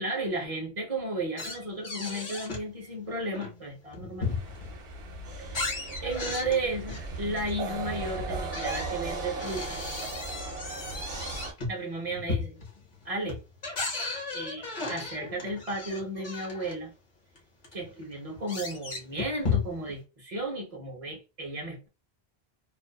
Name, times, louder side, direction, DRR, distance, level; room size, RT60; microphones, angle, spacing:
voice 1, 0.0-4.3 6.0-9.8 11.7-12.6 13.0-13.4 14.3-16.9 17.7-21.9, right 2 dB, 35° right, 0.8 m, -34 dB
sound 1, 1.4-2.7 3.1-4.8 5.2-7.8 8.4-16.7 17.4-17.5 17.6-20.0, left 4 dB, 50° left, 0.9 m, -35 dB
sound 2, 4.2-11.5, right 3 dB, 70° right, 1.0 m, -37 dB
2.5 x 2.4 x 2.2 m
omnidirectional pair, 1.1 m